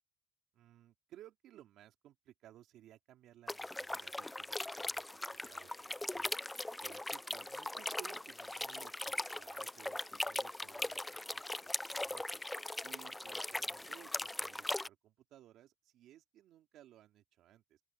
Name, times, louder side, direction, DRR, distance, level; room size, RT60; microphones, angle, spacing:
voice 1, 0.5-6.3 6.8-12.4 12.8-17.8, right 12 dB, 60° right, 3.5 m, -60 dB
sound 1, 3.5-14.9, left 1 dB, 10° left, 0.5 m, -40 dB
open air
cardioid pair, 140°, 0 cm